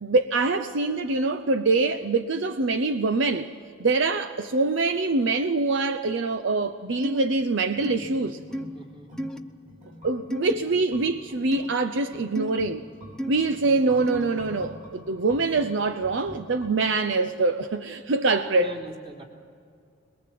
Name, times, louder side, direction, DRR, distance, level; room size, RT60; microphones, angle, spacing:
voice 1, 0.0-3.5 3.8-8.4 10.0-12.8 13.3-18.7, right 3 dB, 65° right, 0.7 m, -24 dB
sound 1, 7.0-7.2 7.8-8.0 8.5-8.7 9.2-9.4 10.3-10.5 11.5-11.7 12.3-12.5 13.2-13.3 14.1-14.3, equal, 5° left, 0.8 m, -31 dB
sound 2, 7.7-17.3 17.6-17.7, equal, 45° right, 7.3 m, -46 dB
voice 2, 8.7-9.1 18.6-19.2, right 1 dB, 30° right, 3.2 m, -42 dB
22.5 x 22.0 x 7.6 m
head